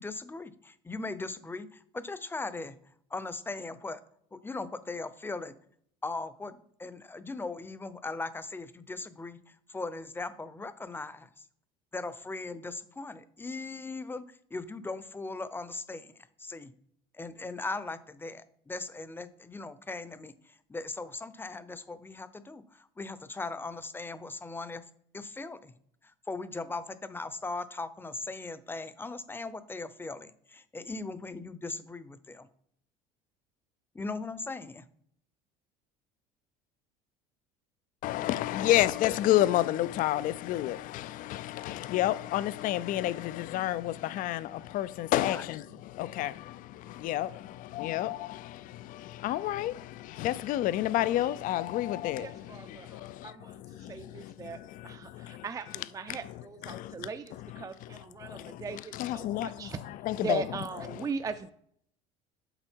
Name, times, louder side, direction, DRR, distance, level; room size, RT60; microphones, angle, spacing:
voice 1, 0.0-2.8 3.1-4.0 4.3-5.6 6.0-11.5 11.9-16.7 17.1-24.8 25.1-25.7 26.0-32.5 33.9-34.9 45.2-45.5, left 3 dB, 15° left, 0.7 m, -39 dB
voice 2, 38.0-61.1, left 14 dB, 60° left, 0.5 m, -31 dB
voice 3, 52.2-53.5 53.9-59.8 60.2-61.5, right 5 dB, 20° right, 0.5 m, -39 dB
7.9 x 5.2 x 4.6 m
supercardioid pair, 90°, 16 cm